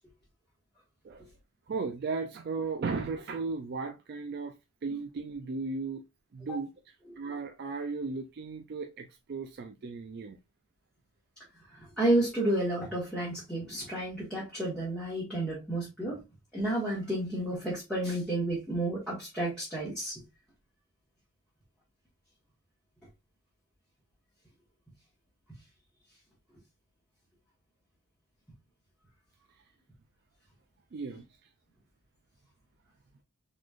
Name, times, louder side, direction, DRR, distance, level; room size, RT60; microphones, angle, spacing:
voice 1, 1.7-4.6 4.8-6.0 6.3-6.7 7.2-10.4 30.9-31.2, right 4 dB, 45° right, 0.3 m, -35 dB
voice 2, 11.8-16.2 16.5-20.2, right 1 dB, 5° left, 1.3 m, -31 dB
4.0 x 3.1 x 2.4 m
head